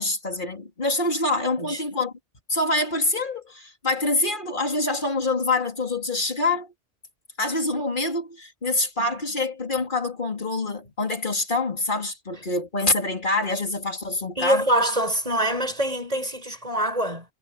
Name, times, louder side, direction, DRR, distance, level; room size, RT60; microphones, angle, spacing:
voice 1, 0.0-2.1 2.5-6.7 7.4-14.7, left 2 dB, 50° left, 3.4 m, -26 dB
voice 2, 14.4-17.3, right 1 dB, 35° right, 7.2 m, -24 dB
omnidirectional pair, 1.1 m